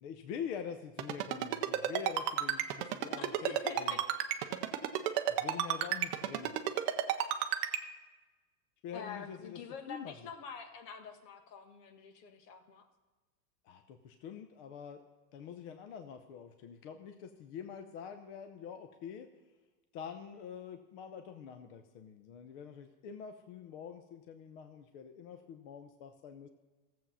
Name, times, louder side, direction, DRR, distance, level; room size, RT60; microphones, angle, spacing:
voice 1, 0.0-4.0 5.3-6.5 8.8-9.6 9.9-10.1 13.6-15.0 15.3-19.3 19.9-26.5, left 7 dB, 45° left, 7 dB, 0.8 m, -45 dB
Ringtone, 1.0-7.8, right 12 dB, 25° right, 0.5 m, -31 dB
voice 2, 3.2-4.0 5.8-5.9 8.9-12.9, left 6 dB, 70° left, 6 dB, 1.8 m, -46 dB
15.0 x 7.7 x 5.6 m, 1.2 s
supercardioid pair, 150°, 50 cm